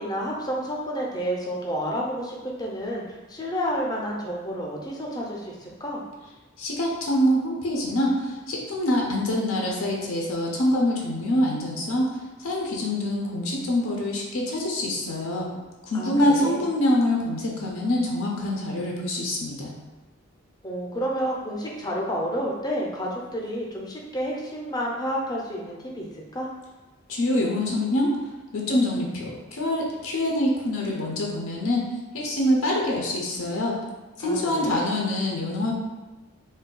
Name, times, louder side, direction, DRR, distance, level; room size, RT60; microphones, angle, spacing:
voice 1, 0.0-6.0 15.9-16.6 20.6-26.5 34.2-34.9, equal, 20° left, -2 dB, 0.4 m, -30 dB
voice 2, 6.6-12.1 12.4-15.5 15.8-19.7 27.1-28.1 28.5-31.8 32.1-33.8 34.2-35.7, left 1 dB, 90° left, -2 dB, 0.5 m, -25 dB
2.6 x 2.2 x 3.7 m, 1.2 s
head